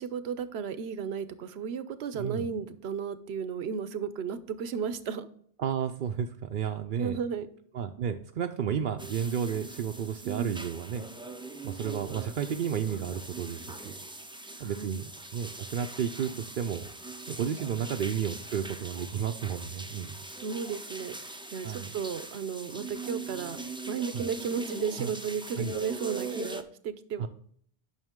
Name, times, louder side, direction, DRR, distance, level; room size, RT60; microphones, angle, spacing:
voice 1, 0.0-5.3 7.0-7.5 10.2-10.6 14.6-15.0 20.4-23.6 23.9-27.3, right 6 dB, 80° right, 13 dB, 0.9 m, -34 dB
voice 2, 2.1-2.5 5.6-7.2 7.7-11.0 11.6-13.9 14.6-15.0 15.3-16.9 17.3-20.2 21.6-21.9 24.1-24.2 25.0-25.1 25.6-25.8 27.2-27.3, right 8 dB, 60° right, 4 dB, 0.7 m, -32 dB
sound 1, 9.0-26.6, right 2 dB, 10° right, 0.4 m, -41 dB
9.1 x 6.1 x 3.6 m, 0.62 s
omnidirectional pair, 1.1 m